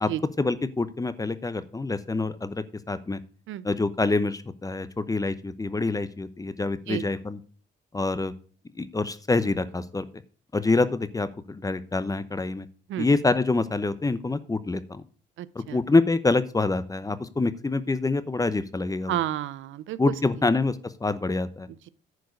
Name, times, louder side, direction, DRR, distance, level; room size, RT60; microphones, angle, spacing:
voice 1, 0.4-3.2 3.6-7.4 7.9-8.3 8.8-10.0 10.5-12.7 13.0-15.0 15.5-19.2 20.0-20.8 21.0-21.7, left 3 dB, 15° left, 14 dB, 0.8 m, -26 dB
voice 2, 15.4-15.8 19.1-20.0 21.7-21.9, right 13 dB, 75° right, 17 dB, 0.6 m, -31 dB
10.5 x 4.7 x 6.3 m, 0.41 s
cardioid pair, 90°, 20 cm